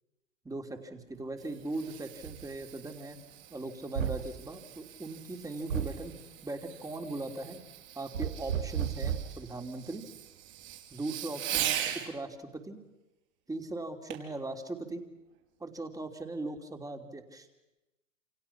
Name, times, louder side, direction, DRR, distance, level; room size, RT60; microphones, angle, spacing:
voice 1, 0.4-3.2 3.5-6.1 6.4-7.6 7.9-10.0 10.9-12.8 13.5-15.0 15.6-17.5, right 2 dB, 10° right, 5 dB, 3.2 m, -39 dB
Fireworks, 1.1-12.1 14.1-14.4 15.0-15.1, right 11 dB, 45° right, 5.1 m, -41 dB
sound 1, 2.2-2.4 4.0-4.3 5.7-6.0 8.1-9.4, right 8 dB, 75° right, 2.7 m, -33 dB
28.5 x 28.0 x 6.0 m, 0.98 s
hypercardioid pair, 100°, 40 cm